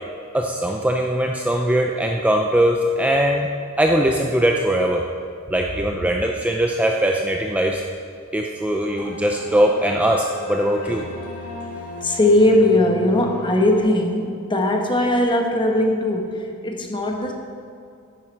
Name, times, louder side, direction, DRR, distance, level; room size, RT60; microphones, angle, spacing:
voice 1, 0.3-3.5 3.8-5.0 5.5-7.8 8.3-11.0, right 1 dB, 5° right, 1 dB, 0.5 m, -20 dB
sound 1, 8.8-13.8, left 2 dB, 80° left, 2.6 m, -35 dB
voice 2, 12.0-17.3, left 1 dB, 20° left, 2 dB, 1.2 m, -19 dB
10.5 x 9.5 x 4.5 m, 2.4 s
head